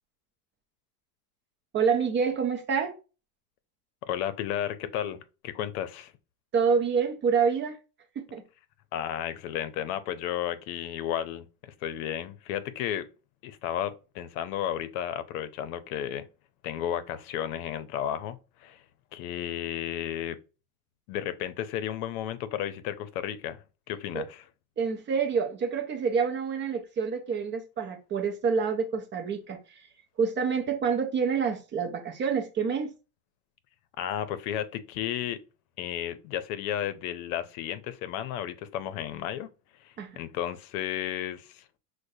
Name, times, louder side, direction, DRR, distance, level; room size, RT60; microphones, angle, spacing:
voice 1, 1.7-3.0 6.5-7.8 8.2-8.4 24.1-24.2 24.8-29.9 30.2-32.9 40.0-40.2, right 6 dB, 25° right, 0.5 m, -27 dB
voice 2, 4.0-5.2 5.4-6.1 8.9-13.1 13.4-16.3 16.6-18.8 19.1-20.4 21.1-23.6 23.9-24.5 34.0-35.4 35.8-39.5 39.8-41.6, left 10 dB, 80° left, 0.7 m, -33 dB
6.3 x 2.1 x 2.6 m
supercardioid pair, 140°, 43 cm